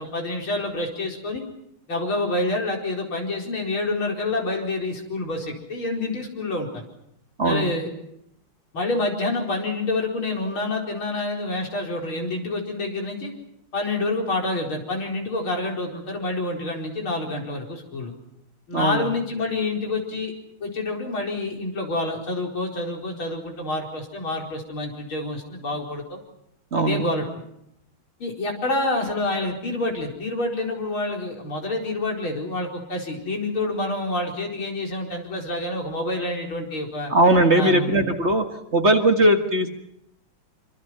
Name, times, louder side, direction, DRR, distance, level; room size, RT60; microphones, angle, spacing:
voice 1, 0.0-1.4 1.9-6.8 7.4-7.9 8.7-13.3 13.7-18.1 18.7-20.3 20.6-26.2 26.8-27.3 28.2-37.1 37.6-38.0, left 2 dB, 85° left, 1 dB, 5.4 m, -27 dB
voice 2, 7.4-7.7 18.7-19.1 26.7-27.0 37.1-38.4 38.7-39.7, right 1 dB, 35° right, 5 dB, 1.8 m, -19 dB
26.0 x 25.5 x 5.9 m, 0.79 s
omnidirectional pair, 2.2 m